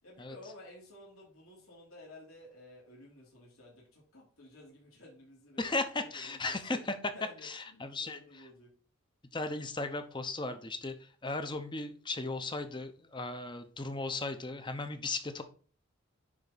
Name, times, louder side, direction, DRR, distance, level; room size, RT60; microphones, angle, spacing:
voice 1, 0.0-5.7 6.0-6.8 7.1-8.7, left 1 dB, 80° left, -4 dB, 3.3 m, -53 dB
voice 2, 5.6-6.8 7.4-8.4 9.3-15.4, left 3 dB, 20° left, 8 dB, 0.8 m, -36 dB
10.0 x 4.1 x 4.1 m, 0.42 s
head